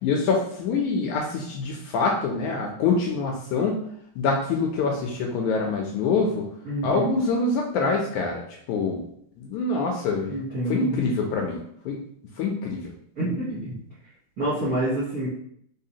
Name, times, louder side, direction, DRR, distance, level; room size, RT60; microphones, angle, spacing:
voice 1, 0.0-3.8 4.2-6.4 6.8-8.4 8.7-9.0 9.4-10.4 10.7-12.0 12.4-12.9, left 4 dB, 80° left, 0 dB, 1.8 m, -25 dB
voice 2, 6.6-7.1 10.3-11.0 13.2-13.8 14.4-15.3, right 1 dB, 60° right, -9 dB, 0.9 m, -27 dB
4.8 x 3.7 x 2.8 m, 0.68 s
omnidirectional pair, 3.9 m